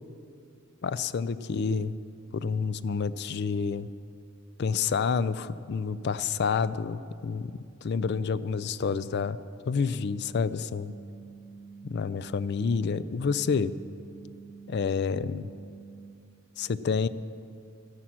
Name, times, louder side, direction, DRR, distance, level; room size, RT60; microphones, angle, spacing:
voice 1, 0.8-1.9 2.3-3.9 4.6-7.5 7.8-9.4 9.6-10.9 11.8-13.7 14.7-15.5 16.6-17.1, left 5 dB, 55° left, 16 dB, 0.4 m, -28 dB
sound 1, 10.7-16.1, right 5 dB, 85° left, 1.5 m, -47 dB
13.0 x 11.5 x 6.1 m, 2.5 s
head